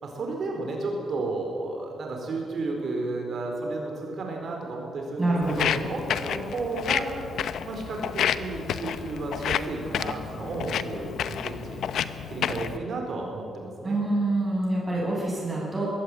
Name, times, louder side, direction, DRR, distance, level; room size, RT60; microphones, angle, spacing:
voice 1, 0.0-7.1 7.6-11.9 12.3-14.0, right 3 dB, 45° right, 2 dB, 4.2 m, -33 dB
voice 2, 5.2-5.7 13.8-15.9, right 2 dB, 15° right, -5 dB, 7.8 m, -26 dB
Walk footsteps, 5.4-12.8, left 8 dB, 65° left, 0.8 m, -30 dB
22.0 x 17.0 x 9.0 m, 2.6 s
wide cardioid pair, 170°, 0 cm